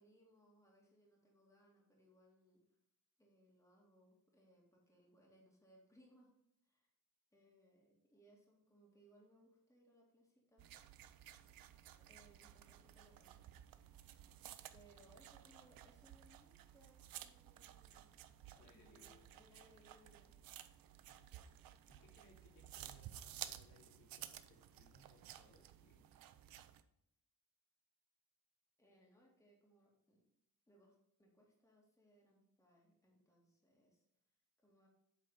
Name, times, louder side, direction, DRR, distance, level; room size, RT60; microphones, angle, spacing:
voice 1, 0.0-2.6 3.2-6.3 6.6-6.9 7.3-10.7 11.9-13.5 14.7-18.2 18.6-20.4 21.2-21.5 28.8-30.2 30.7-34.0 34.6-34.9, equal, 10° left, -3 dB, 2.2 m, -69 dB
sound 1, 10.6-26.8, right 11 dB, 85° right, 0.6 m, -55 dB
voice 2, 18.5-19.2 21.1-21.3 21.9-26.1, left 2 dB, 65° left, -2 dB, 2.5 m, -67 dB
8.2 x 4.1 x 5.5 m, 0.79 s
cardioid pair, 135°, 34 cm